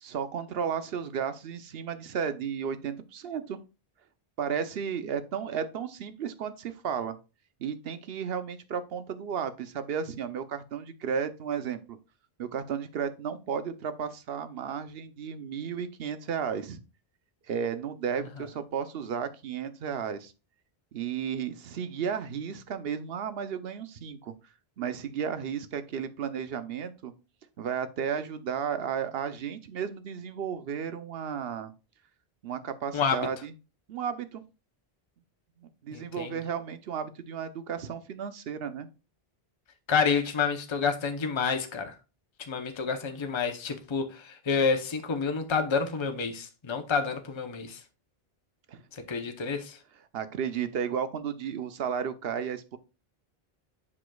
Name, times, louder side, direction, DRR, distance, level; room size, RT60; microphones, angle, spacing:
voice 1, 0.0-3.6 4.4-7.2 7.6-12.0 12.4-16.8 17.5-20.3 20.9-24.3 24.8-27.1 27.6-31.7 32.4-33.5 33.9-34.4 35.8-38.9 48.7-48.8 50.1-52.8, right 7 dB, 75° right, 0.9 m, -33 dB
voice 2, 32.9-33.3 35.9-36.4 39.9-41.9 42.5-47.8 49.1-49.8, left 5 dB, 30° left, 0.8 m, -29 dB
7.6 x 6.1 x 2.3 m
omnidirectional pair, 1.0 m